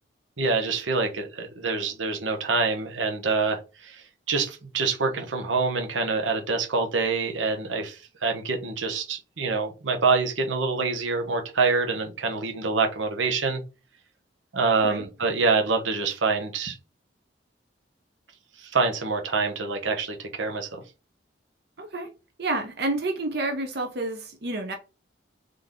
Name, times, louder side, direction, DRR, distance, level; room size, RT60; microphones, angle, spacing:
voice 1, 0.4-13.6 14.5-16.8 18.6-20.8, right 4 dB, 80° right, 0.9 m, -26 dB
voice 2, 21.8-22.1 22.4-24.7, right 2 dB, 55° right, 0.7 m, -29 dB
4.0 x 3.4 x 3.6 m
head